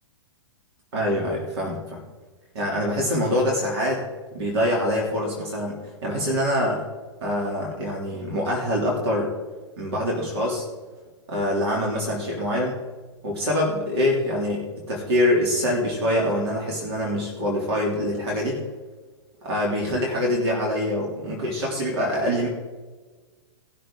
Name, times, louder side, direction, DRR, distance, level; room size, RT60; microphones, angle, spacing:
voice 1, 0.9-2.0 2.5-4.0 4.3-6.8 7.2-9.3 9.8-10.7 11.3-12.8 13.2-18.6 19.4-22.5, left 1 dB, 60° right, -1 dB, 3.1 m, -25 dB
19.0 x 6.7 x 3.9 m, 1.3 s
figure-of-eight pair, 110°, 15 cm